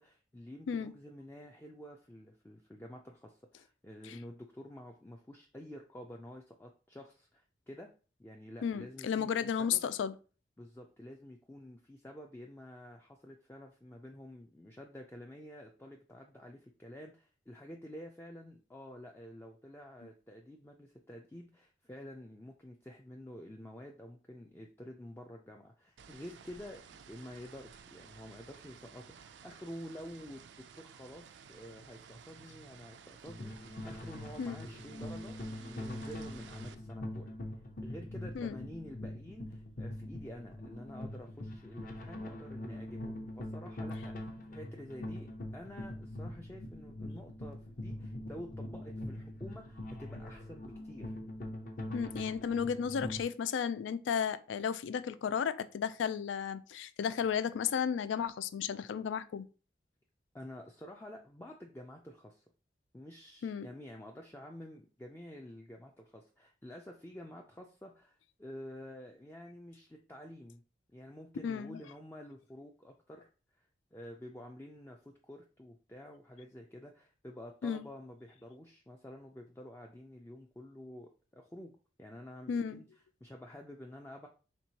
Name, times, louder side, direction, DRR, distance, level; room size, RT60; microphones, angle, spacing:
voice 1, 0.0-7.9 8.2-9.3 9.6-9.8 10.6-30.4 30.8-37.3 37.8-51.2 60.3-62.4 62.9-70.6 70.9-73.7 73.9-81.7 82.0-82.9 83.2-84.3, left 1 dB, 10° left, 0.3 m, -49 dB
voice 2, 8.6-10.1 34.4-34.6 38.3-38.6 51.9-59.5 63.4-63.7 71.4-71.8 77.6-77.8 82.5-82.8, left 7 dB, 90° left, 0.3 m, -34 dB
sound 1, 26.0-36.8, right 7 dB, 75° right, 0.4 m, -55 dB
sound 2, 33.2-53.2, left 1 dB, 45° left, 0.7 m, -43 dB
4.5 x 3.4 x 2.8 m
head